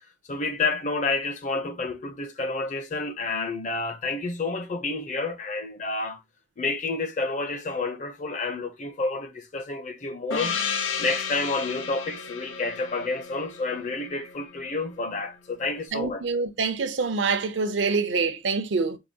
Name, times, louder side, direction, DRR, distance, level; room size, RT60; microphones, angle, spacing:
voice 1, 0.3-6.2 6.6-10.6 11.0-16.2, left 3 dB, 40° left, 0.5 m, -29 dB
Gong, 10.3-14.6, left 6 dB, 90° left, 0.6 m, -33 dB
voice 2, 15.9-19.0, right 4 dB, 70° right, 0.5 m, -26 dB
4.7 x 2.3 x 2.6 m
head